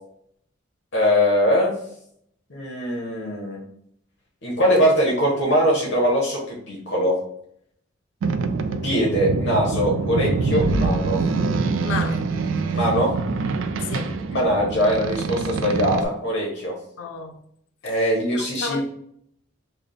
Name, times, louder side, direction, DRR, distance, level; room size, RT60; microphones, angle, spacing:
voice 1, 0.9-1.7 2.5-3.6 4.4-7.2 8.8-11.2 12.7-13.1 14.3-16.7 17.8-18.8, equal, 60° left, 0.8 m, -21 dB
Boat Water vehicle, 8.2-16.0, right 4 dB, 80° right, 0.3 m, -25 dB
voice 2, 11.8-12.3 13.8-14.2 17.0-17.4 18.3-18.8, left 5 dB, 90° left, 0.4 m, -31 dB
3.3 x 2.0 x 3.8 m
head